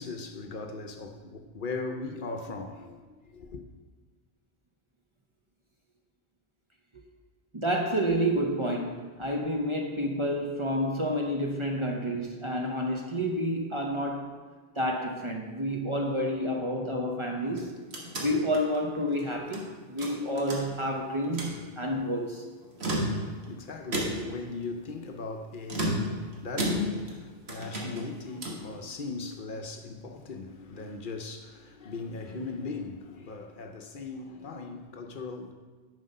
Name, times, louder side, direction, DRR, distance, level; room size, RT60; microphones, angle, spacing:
voice 1, 0.0-3.6 23.0-35.5, left 3 dB, 60° left, 0.8 m, -39 dB
voice 2, 7.5-14.3 14.8-17.8 18.2-22.5, equal, 35° right, 0.7 m, -29 dB
sound 1, 17.5-19.6 20.0-21.0 21.2-21.6 22.6-23.5 23.9-24.4 25.7-27.2 27.5-28.7, equal, 90° right, 1.6 m, -32 dB
7.5 x 5.2 x 5.4 m
omnidirectional pair, 1.0 m